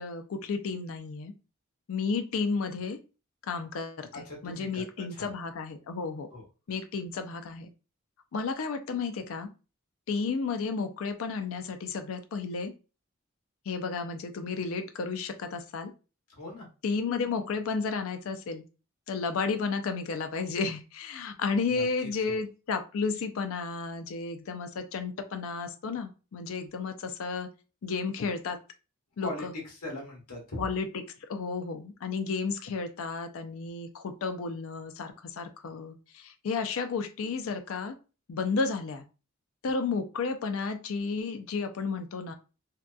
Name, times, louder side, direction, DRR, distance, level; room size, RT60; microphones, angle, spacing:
voice 1, 0.0-1.3 1.9-3.0 3.5-6.3 6.7-7.7 8.3-9.5 10.1-12.7 13.7-15.9 16.8-18.6 19.1-27.5 27.8-28.6 29.2-29.5 30.6-31.0 31.3-37.9 38.3-39.0 39.6-42.3, left 4 dB, 70° left, 7 dB, 0.4 m, -32 dB
voice 2, 4.1-4.8 5.1-5.3 6.3-6.4 16.4-16.7 21.7-21.8 22.3-22.4 29.2-29.5 29.8-30.6, left 1 dB, 85° left, -2 dB, 1.0 m, -39 dB
2.8 x 2.2 x 2.3 m, 0.32 s
head